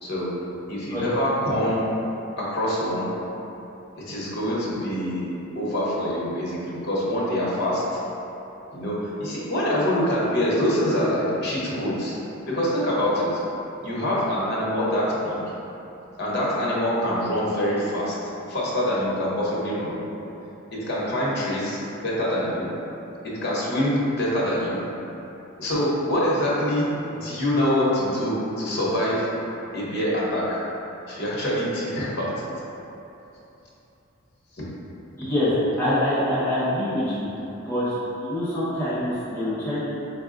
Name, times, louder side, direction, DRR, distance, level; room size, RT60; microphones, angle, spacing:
voice 1, 0.0-0.3 0.7-1.9 2.4-3.1 3.9-5.3 5.5-8.0 8.7-12.1 12.5-13.4 13.8-15.4 16.2-18.2 18.5-20.0 20.7-22.7 23.2-24.8 25.6-29.3 29.7-30.6 31.0-32.5, equal, 55° left, -6 dB, 1.0 m, -25 dB
voice 2, 35.2-35.5 35.8-37.3 37.6-39.9, left 1 dB, 10° left, -14 dB, 1.2 m, -25 dB
4.7 x 2.2 x 3.7 m, 2.9 s
head